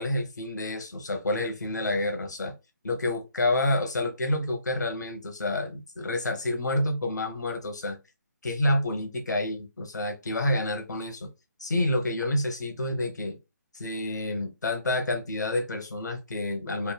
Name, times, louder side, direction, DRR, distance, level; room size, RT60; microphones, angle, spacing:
voice 1, 0.0-2.5 2.8-8.0 8.4-11.3 11.6-13.4 13.7-16.9, left 1 dB, 65° left, 0.9 m, -28 dB
3.3 x 2.1 x 3.2 m
figure-of-eight pair, 145°, 10 cm